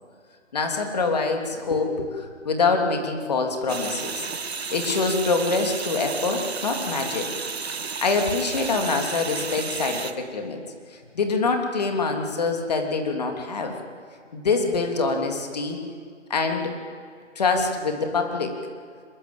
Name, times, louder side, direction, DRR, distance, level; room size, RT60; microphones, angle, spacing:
voice 1, 0.5-7.3 8.0-10.6 10.9-13.8 14.3-15.8 16.3-16.7 17.3-18.5, left 4 dB, 35° left, 4 dB, 3.1 m, -25 dB
sound 1, 3.7-10.1, right 5 dB, 55° right, 1.6 m, -32 dB
25.0 x 21.5 x 8.8 m, 2.1 s
hypercardioid pair, 170°, 37 cm